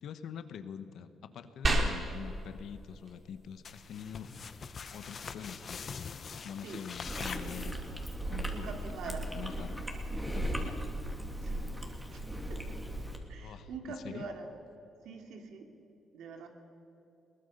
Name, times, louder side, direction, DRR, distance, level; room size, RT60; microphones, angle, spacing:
voice 1, 0.0-4.3 4.9-5.9 6.4-7.9 8.2-9.8 10.3-10.7 13.4-14.3, left 8 dB, 70° left, 11 dB, 1.3 m, -45 dB
sound 1, 1.6-11.6, right 2 dB, 35° right, 3.4 m, -39 dB
sound 2, 3.6-8.1, left 6 dB, 45° left, 1.0 m, -43 dB
Chewing mastication, 7.0-13.2, right 1 dB, 5° right, 2.9 m, -37 dB
voice 2, 8.5-9.3 11.4-11.6 12.1-12.2 12.5-12.8 13.3-14.5 15.0-15.7 16.1-16.5, right 4 dB, 80° right, 4 dB, 2.6 m, -44 dB
21.5 x 19.0 x 6.8 m, 3.0 s
cardioid pair, 90°, 0 cm